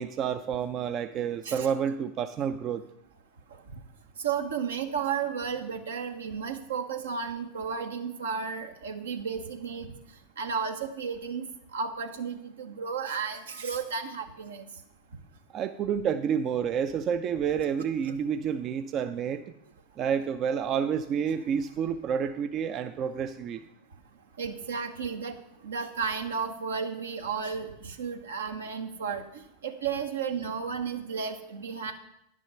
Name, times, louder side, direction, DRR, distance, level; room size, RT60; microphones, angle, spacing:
voice 1, 0.0-2.8 15.5-19.4 20.0-23.6, right 7 dB, 40° right, 9 dB, 0.5 m, -29 dB
voice 2, 4.2-9.9 10.4-14.7 18.0-18.1 24.4-25.4 25.6-31.9, right 6 dB, 75° right, 5 dB, 1.1 m, -33 dB
10.0 x 6.2 x 5.6 m, 0.78 s
figure-of-eight pair, 90°, 0 cm